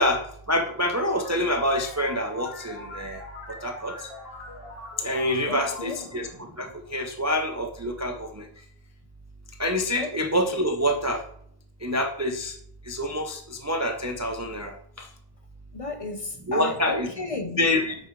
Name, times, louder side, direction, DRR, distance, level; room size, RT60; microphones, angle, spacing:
voice 1, 0.0-3.2 3.5-4.1 5.0-8.5 9.6-11.2 11.8-12.6 12.8-15.1 16.5-17.1 17.6-17.9, left 1 dB, 20° right, 0.4 m, -27 dB
sound 1, 1.0-7.3, left 2 dB, 65° left, 1.8 m, -42 dB
voice 2, 5.5-6.2 10.0-10.2 15.7-17.6, left 3 dB, 35° left, 0.8 m, -34 dB
8.5 x 6.7 x 3.1 m
omnidirectional pair, 1.1 m